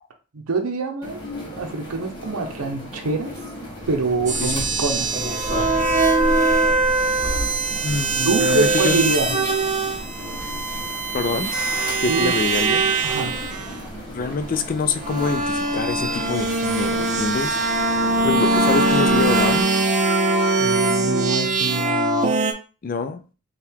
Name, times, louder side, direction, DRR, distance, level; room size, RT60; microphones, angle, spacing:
voice 1, 0.3-1.2 1.5-3.3 3.9-5.2 8.2-9.4 12.1-12.3 13.0-13.4 20.6-22.3, right 3 dB, 75° right, 4 dB, 0.7 m, -25 dB
sound 1, 1.0-18.3, left 1 dB, 20° left, 1.0 m, -37 dB
pebble crunch, 3.8-19.6, equal, ahead, 1.4 m, -36 dB
sound 2, 4.3-13.8 14.6-22.5, right 3 dB, 35° right, 0.6 m, -22 dB
voice 2, 6.7-7.5 7.8-9.1 11.1-11.5 12.0-12.9 14.1-17.6 18.2-19.7 22.8-23.2, left 4 dB, 40° left, 10 dB, 0.4 m, -26 dB
4.5 x 2.3 x 3.5 m, 0.35 s
head